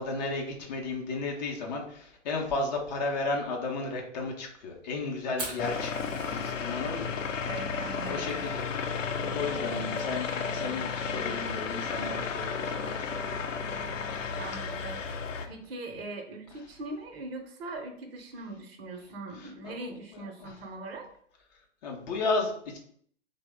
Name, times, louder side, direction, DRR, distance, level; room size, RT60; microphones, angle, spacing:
voice 1, 0.0-7.1 8.0-8.8 9.1-13.3 19.6-20.2 21.8-22.8, left 3 dB, 35° left, 1 dB, 0.6 m, -34 dB
Fire, 5.3-15.1, right 2 dB, 15° right, 0.3 m, -47 dB
sound 1, 5.6-15.5, left 5 dB, 85° left, 0.5 m, -33 dB
voice 2, 7.4-8.4 14.4-15.0 15.5-21.1, right 2 dB, 55° right, 4 dB, 0.7 m, -41 dB
3.0 x 2.1 x 3.4 m, 0.64 s
figure-of-eight pair, 120°, 37 cm